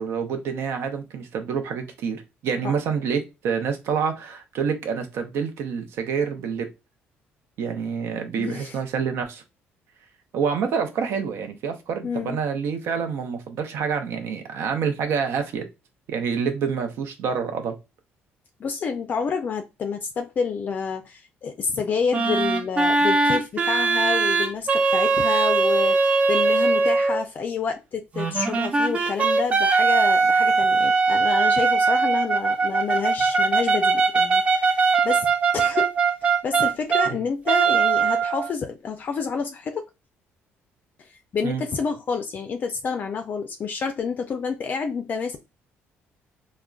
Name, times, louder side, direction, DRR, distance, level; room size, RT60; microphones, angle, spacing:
voice 1, 0.0-2.2 2.4-6.7 7.6-9.4 10.3-15.6 16.1-17.7 37.1-37.2 41.4-41.6, right 6 dB, 75° right, 0.6 m, -27 dB
voice 2, 8.4-8.8 12.0-12.4 18.6-35.3 35.5-35.9 36.2-39.9 41.3-45.4, left 5 dB, 40° left, 0.4 m, -29 dB
sound 1, 22.1-27.2 28.1-37.1 37.5-38.5, right 4 dB, 30° right, 0.4 m, -21 dB
3.6 x 2.1 x 2.3 m
cardioid pair, 120°, 4 cm